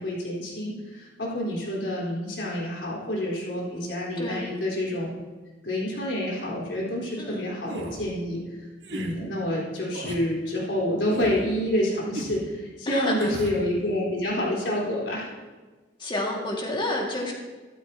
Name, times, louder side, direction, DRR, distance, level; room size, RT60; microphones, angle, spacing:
voice 1, 0.0-5.1 5.6-15.3, left 1 dB, 85° left, -4 dB, 4.1 m, -28 dB
voice 2, 4.2-4.5 7.2-7.5 12.9-13.3 16.0-17.3, left 1 dB, 30° left, -1 dB, 2.0 m, -29 dB
sound 1, 7.7-8.0 8.8-9.1 9.9-10.2 11.1-11.4 12.1-12.4 13.2-13.6, right 1 dB, 80° right, 1.7 m, -36 dB
13.5 x 12.5 x 2.8 m, 1.3 s
head